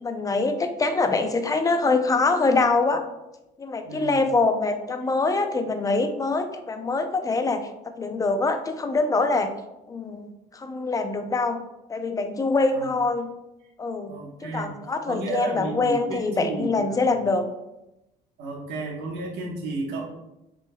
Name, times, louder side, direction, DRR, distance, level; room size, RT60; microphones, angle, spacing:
voice 1, 0.0-3.1 3.6-9.5 9.9-13.3 13.8-14.1 14.4-17.5, left 3 dB, 20° left, 7 dB, 0.5 m, -24 dB
voice 2, 3.8-4.3 12.7-12.9 14.1-14.7 15.1-17.1 18.4-20.1, right 2 dB, 85° right, -1 dB, 1.2 m, -33 dB
6.1 x 3.9 x 2.2 m, 0.92 s
cardioid pair, 110°, 17 cm